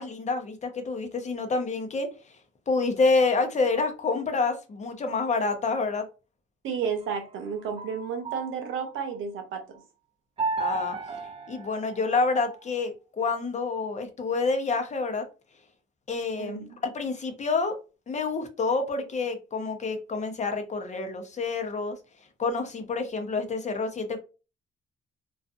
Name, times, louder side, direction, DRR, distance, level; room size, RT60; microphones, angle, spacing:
voice 1, 0.0-2.1 2.7-6.1 10.6-11.0 11.5-15.3 16.1-17.8 18.1-22.0 22.4-24.2, left 4 dB, 35° left, 0.7 m, -28 dB
voice 2, 6.6-9.6 16.4-16.8, right 6 dB, 85° right, 0.7 m, -32 dB
sound 1, 6.9-9.1 10.4-12.6, right 4 dB, 30° right, 0.4 m, -35 dB
2.6 x 2.3 x 2.4 m
cardioid pair, 90°, 20 cm